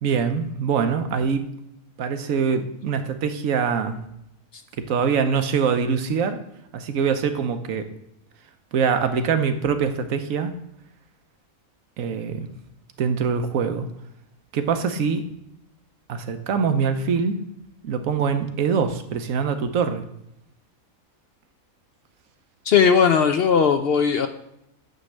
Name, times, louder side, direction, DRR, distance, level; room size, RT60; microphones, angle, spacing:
voice 1, 0.0-1.5 2.0-4.0 4.9-6.4 6.7-7.9 8.7-10.5 12.0-12.5 13.0-13.9 14.5-15.2 16.1-17.4 17.8-20.0, right 6 dB, 75° right, 8 dB, 1.1 m, -23 dB
voice 2, 22.7-24.3, left 6 dB, 65° left, 8 dB, 0.6 m, -18 dB
9.2 x 3.2 x 6.3 m, 0.81 s
omnidirectional pair, 1.4 m